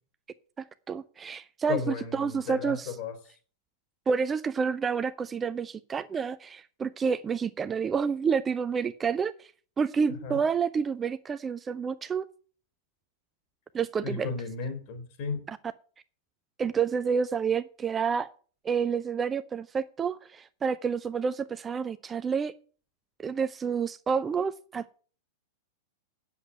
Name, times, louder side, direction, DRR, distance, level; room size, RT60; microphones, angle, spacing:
voice 1, 0.6-2.9 4.1-9.5 9.8-12.2 13.7-14.3 15.5-15.6 16.6-18.3 18.6-22.5 23.2-25.0, right 6 dB, 20° right, 14 dB, 0.5 m, -29 dB
voice 2, 1.7-3.2 10.1-10.4 14.0-15.4, left 5 dB, 45° left, 6 dB, 3.5 m, -34 dB
8.6 x 7.2 x 8.6 m, 0.41 s
figure-of-eight pair, 95°, 0 cm